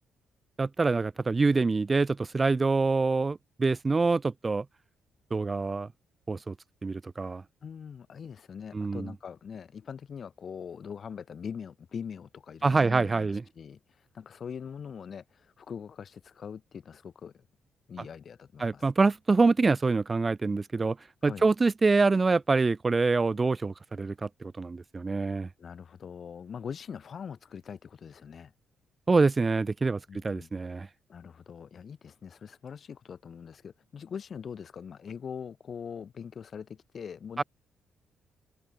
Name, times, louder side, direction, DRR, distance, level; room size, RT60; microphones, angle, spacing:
voice 1, 0.6-4.6 5.3-5.9 6.3-6.5 6.8-7.4 8.7-9.1 12.6-13.4 18.6-21.0 21.2-25.5 29.1-30.9 37.4-37.5, right 3 dB, 30° right, 2.3 m, -25 dB
voice 2, 7.6-13.8 14.1-17.5 17.9-18.9 21.3-21.5 25.6-28.5 30.1-30.5 31.1-37.4, left 7 dB, 55° left, 4.8 m, -42 dB
open air
supercardioid pair, 60°, 0 cm